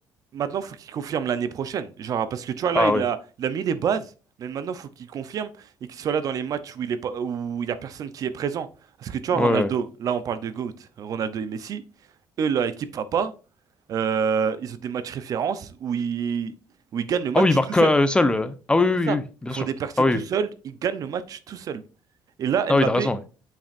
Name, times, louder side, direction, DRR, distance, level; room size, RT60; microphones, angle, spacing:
voice 1, 0.3-4.1 4.4-8.7 9.0-11.8 12.4-13.3 13.9-16.5 16.9-17.9 19.1-19.2 19.5-21.8 22.4-23.1, right 7 dB, 55° right, 0.7 m, -27 dB
voice 2, 9.3-9.7 17.3-19.7 20.0-20.2 22.7-23.2, left 2 dB, 15° left, 0.8 m, -20 dB
6.9 x 5.9 x 2.6 m
cardioid pair, 100°, 7 cm